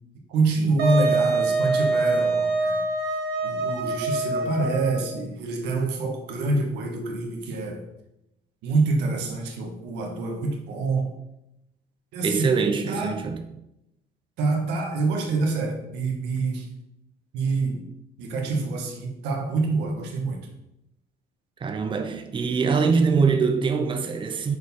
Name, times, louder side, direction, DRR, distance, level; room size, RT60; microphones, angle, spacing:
voice 1, 0.3-2.8 3.4-7.8 8.6-11.1 12.1-12.5 12.9-13.3 14.4-16.7 17.3-17.8 18.2-20.4, right 3 dB, 90° right, 1.6 m, -26 dB
Wind instrument woodwind instrument, 0.8-5.1, right 3 dB, 70° right, 1.7 m, -25 dB
voice 2, 12.2-13.4 21.6-24.6, right 5 dB, 30° right, 0.8 m, -23 dB
6.5 x 4.7 x 5.5 m
cardioid pair, 110°, 17 cm